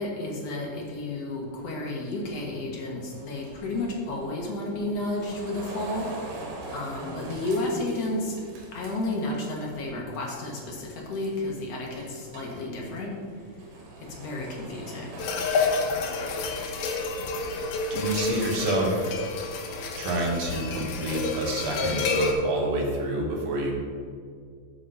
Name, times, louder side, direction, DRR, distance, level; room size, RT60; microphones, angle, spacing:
voice 1, 0.0-6.1 6.7-8.4 8.7-13.1 14.2-15.1, left 2 dB, 55° left, -2 dB, 2.0 m, -32 dB
sound 1, 3.1-9.9 10.1-10.6 11.1-11.6 12.0-16.6, right 2 dB, 85° right, 3.4 m, -43 dB
sound 2, 15.2-22.3, left 3 dB, 85° left, 2.9 m, -29 dB
voice 2, 17.9-19.0 20.0-23.7, right 1 dB, 55° right, -1 dB, 2.1 m, -28 dB
7.8 x 6.7 x 5.6 m, 2.1 s
omnidirectional pair, 4.2 m